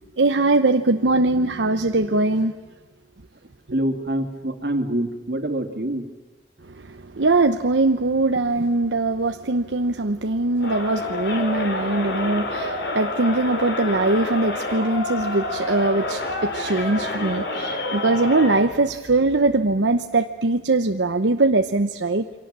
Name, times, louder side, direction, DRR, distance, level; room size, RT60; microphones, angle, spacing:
voice 1, 0.2-2.5 6.9-22.2, right 2 dB, 80° right, 6 dB, 0.9 m, -21 dB
voice 2, 3.7-6.1, right 1 dB, 55° right, 6 dB, 2.4 m, -25 dB
Crowd, 10.6-18.7, left 2 dB, 65° left, 4.3 m, -28 dB
28.5 x 24.0 x 7.5 m, 1.2 s
head